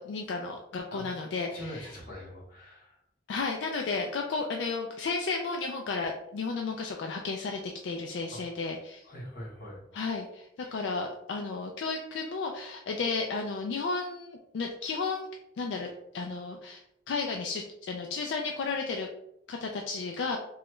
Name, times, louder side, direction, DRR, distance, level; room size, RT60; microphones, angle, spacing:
voice 1, 0.0-1.9 3.3-9.0 9.9-15.2 15.6-15.9 16.1-19.1 19.5-20.4, left 4 dB, 75° left, 2 dB, 0.3 m, -33 dB
voice 2, 1.5-3.0 8.3-8.4 9.0-9.8 10.6-10.8, equal, 50° left, -5 dB, 1.1 m, -43 dB
3.0 x 2.3 x 3.0 m, 0.80 s
head